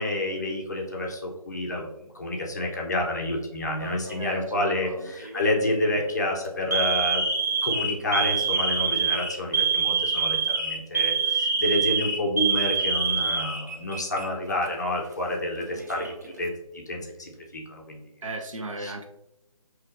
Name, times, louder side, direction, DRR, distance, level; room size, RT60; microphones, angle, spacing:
voice 1, 0.0-7.2 7.6-18.0 18.8-18.9, left 1 dB, 30° left, 0 dB, 0.5 m, -29 dB
Alarm, 3.8-4.3 5.2-5.5 5.9-6.1 6.7-14.3 14.6-14.7 15.6-16.3, right 5 dB, 30° right, 0.3 m, -26 dB
voice 2, 4.2-5.1 18.2-19.1, right 2 dB, 60° right, 4 dB, 0.7 m, -36 dB
5.5 x 2.8 x 2.4 m, 0.93 s
figure-of-eight pair, 160°, 19 cm